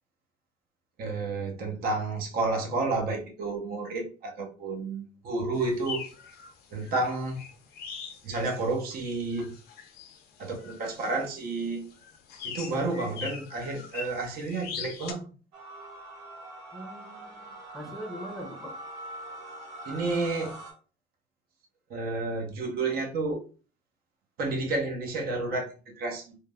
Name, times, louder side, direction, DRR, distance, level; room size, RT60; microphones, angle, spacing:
voice 1, 1.0-6.0 6.7-7.4 8.2-9.5 10.4-11.9 12.4-15.3 19.9-20.6 21.9-23.4 24.4-26.3, right 3 dB, 65° right, 2 dB, 0.9 m, -31 dB
sound 1, 5.5-15.1, left 6 dB, 70° left, 0.5 m, -42 dB
sound 2, 15.5-20.7, right 1 dB, 85° right, 1.0 m, -43 dB
voice 2, 16.7-18.7, equal, ahead, 1 dB, 0.6 m, -42 dB
3.3 x 2.1 x 2.3 m, 0.36 s
cardioid pair, 110°, 17 cm